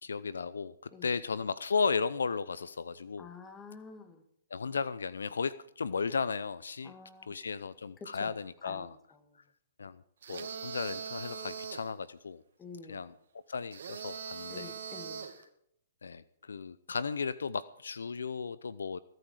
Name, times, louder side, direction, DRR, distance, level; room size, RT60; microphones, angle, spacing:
voice 1, 0.0-0.7 1.0-3.3 4.5-6.9 7.2-9.0 9.8-10.0 10.3-12.4 12.9-13.1 13.5-14.7 16.0-19.0, left 5 dB, 80° left, 18 dB, 0.6 m, -35 dB
voice 2, 3.2-4.2 6.8-7.3 8.0-8.4 8.6-9.4 12.6-13.0 14.5-15.3, left 4 dB, 15° left, 7 dB, 2.5 m, -49 dB
sound 1, 10.2-11.9 13.7-15.4, right 6 dB, 70° right, 2.4 m, -41 dB
22.0 x 9.2 x 4.9 m, 0.71 s
hypercardioid pair, 130°, 0 cm